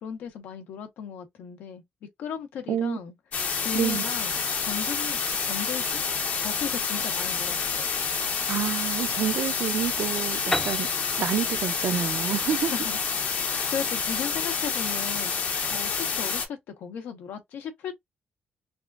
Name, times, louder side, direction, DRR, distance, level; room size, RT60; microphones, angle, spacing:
voice 1, 0.0-1.8 2.2-3.1 3.6-7.9 12.5-13.0 13.4-17.9, left 7 dB, 85° left, 1.0 m, -36 dB
sound 1, 3.3-16.5, left 5 dB, 55° left, 0.9 m, -28 dB
voice 2, 8.5-10.9 11.2-12.7, right 10 dB, 70° right, 0.6 m, -28 dB
Piano, 10.5-14.2, left 1 dB, 15° left, 0.5 m, -35 dB
3.5 x 2.4 x 2.4 m
cardioid pair, 130°, 3 cm